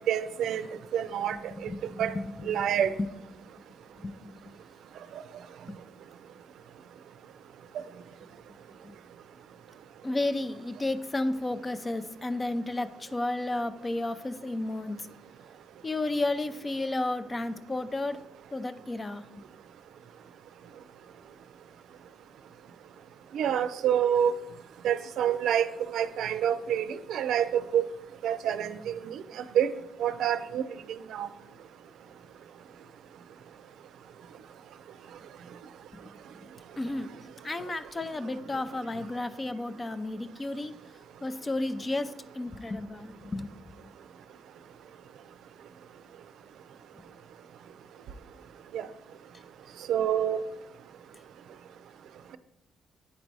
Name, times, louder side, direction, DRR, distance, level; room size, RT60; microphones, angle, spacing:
voice 1, 0.1-0.6 0.9-1.7 2.0-2.1 2.5-2.9 23.3-24.3 24.8-27.8 28.2-29.7 30.0-30.6 31.1-31.3 48.7-48.9 49.9-50.4, right 9 dB, 75° right, 11 dB, 0.5 m, -27 dB
voice 2, 1.6-2.6 3.0-3.1 4.0-4.5 5.7-5.8 8.8-9.0 10.0-15.0 15.8-18.2 18.5-19.4 36.8-37.1 37.4-40.7 41.2-43.5 43.8-43.9, left 2 dB, 25° left, 12 dB, 0.5 m, -32 dB
8.9 x 4.0 x 4.7 m, 0.86 s
cardioid pair, 90°, 0 cm